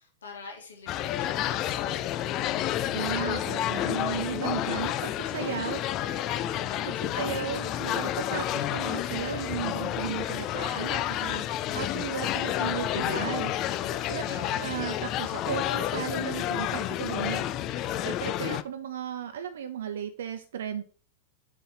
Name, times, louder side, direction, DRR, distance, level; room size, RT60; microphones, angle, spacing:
voice 1, 0.0-2.0, left 4 dB, 70° left, 1 dB, 2.0 m, -48 dB
sound 1, 0.9-18.6, left 12 dB, 35° left, 0.4 m, -30 dB
voice 2, 2.9-5.9 6.9-13.5 14.1-17.5 18.0-20.8, right 8 dB, 60° right, 10 dB, 0.4 m, -35 dB
7.2 x 5.5 x 3.9 m, 0.41 s
figure-of-eight pair, 90°, 0 cm